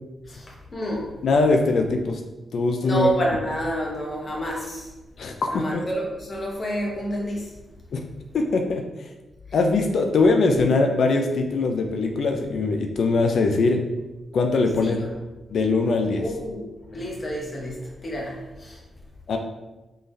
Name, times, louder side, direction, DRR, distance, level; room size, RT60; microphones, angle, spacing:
voice 1, 0.3-1.1 2.8-4.9 5.5-7.5 14.8-15.1 16.2-16.6 16.9-17.8 18.0-18.8, right 1 dB, 35° left, -2 dB, 0.8 m, -28 dB
voice 2, 1.2-2.2 2.5-3.1 5.2-5.8 7.9-8.0 8.3-8.8 9.5-13.8 14.3-15.0 15.5-16.2 19.3-19.4, left 3 dB, 70° left, 4 dB, 0.4 m, -21 dB
3.7 x 3.3 x 2.6 m, 1.1 s
cardioid pair, 105°, 0 cm